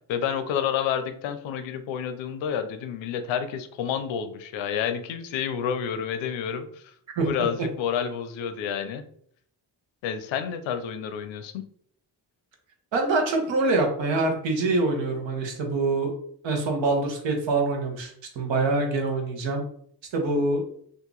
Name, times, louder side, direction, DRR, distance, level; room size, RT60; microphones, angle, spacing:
voice 1, 0.0-6.9 7.2-9.0 10.0-11.7, left 8 dB, 85° left, 9 dB, 0.6 m, -29 dB
voice 2, 12.9-16.1 16.4-19.6 20.1-20.6, right 3 dB, 75° right, 2 dB, 1.0 m, -25 dB
2.8 x 2.5 x 3.7 m, 0.64 s
supercardioid pair, 55°, 45 cm